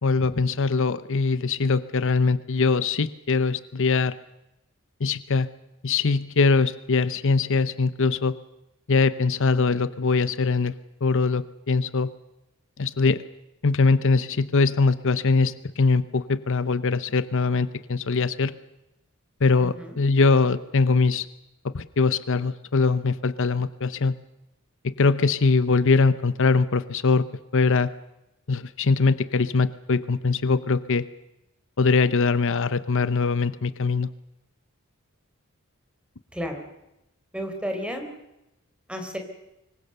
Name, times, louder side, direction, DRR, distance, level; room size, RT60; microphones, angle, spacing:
voice 1, 0.0-4.2 5.0-5.5 5.8-8.4 8.9-10.7 11.0-12.1 12.8-13.2 13.6-18.5 19.4-21.3 21.6-24.1 24.8-27.3 27.5-27.9 28.5-31.0 31.8-34.1, left 4 dB, 65° left, 14 dB, 0.8 m, -22 dB
voice 2, 19.6-20.0 36.3-36.6 37.3-38.1 38.9-39.2, equal, 5° right, 5 dB, 3.9 m, -32 dB
25.0 x 23.0 x 6.8 m, 0.90 s
head